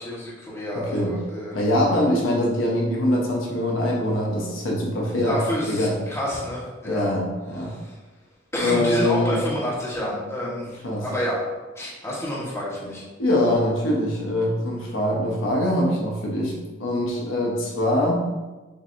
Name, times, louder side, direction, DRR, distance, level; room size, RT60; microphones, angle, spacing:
voice 1, 0.0-1.6 5.3-7.0 7.6-7.9 8.5-11.4 11.7-13.0, left 1 dB, 15° left, -7 dB, 1.3 m, -29 dB
voice 2, 1.5-5.4 5.7-5.9 6.8-7.7 8.6-9.4 10.8-11.0 13.2-18.1, left 1 dB, 90° left, -2 dB, 1.0 m, -23 dB
6.6 x 2.8 x 2.7 m, 1.2 s
head